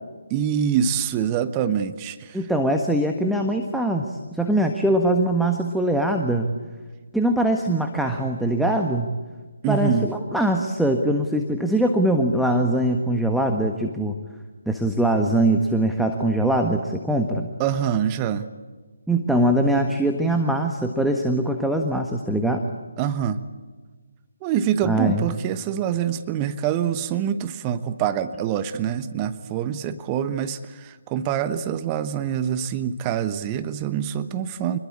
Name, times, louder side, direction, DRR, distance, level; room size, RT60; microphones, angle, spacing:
voice 1, 0.3-2.4 9.6-10.1 17.6-18.5 23.0-23.4 24.4-34.8, right 9 dB, 20° right, 11 dB, 1.1 m, -25 dB
voice 2, 2.3-6.5 7.1-9.1 9.7-14.2 14.7-17.5 19.1-22.6 24.8-25.3, right 1 dB, ahead, 3 dB, 1.5 m, -22 dB
28.0 x 21.5 x 8.6 m, 1.3 s
figure-of-eight pair, 150°, 0 cm